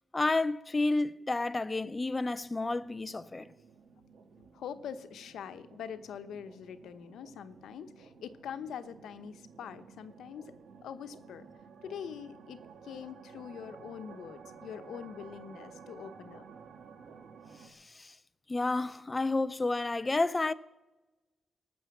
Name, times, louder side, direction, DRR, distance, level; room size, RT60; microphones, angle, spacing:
voice 1, 0.1-3.5 17.6-18.2 18.5-20.5, left 2 dB, 20° left, 0.4 m, -30 dB
sound 1, 2.1-17.7, right 6 dB, 75° right, 1.7 m, -53 dB
voice 2, 4.5-10.5 10.8-11.4 11.8-16.4, left 8 dB, 85° left, 0.9 m, -44 dB
18.5 x 7.1 x 7.1 m
cardioid pair, 130°, 0 cm